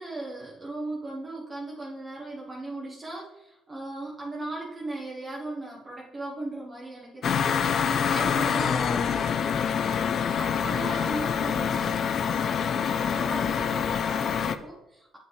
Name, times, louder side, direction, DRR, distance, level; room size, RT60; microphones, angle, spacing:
voice 1, 0.0-9.7 10.3-15.2, right 2 dB, 25° right, -4 dB, 1.1 m, -38 dB
sound 1, 7.2-14.6, left 7 dB, 55° left, 0.4 m, -26 dB
7.4 x 5.4 x 3.2 m, 0.92 s
supercardioid pair, 85°, 0 cm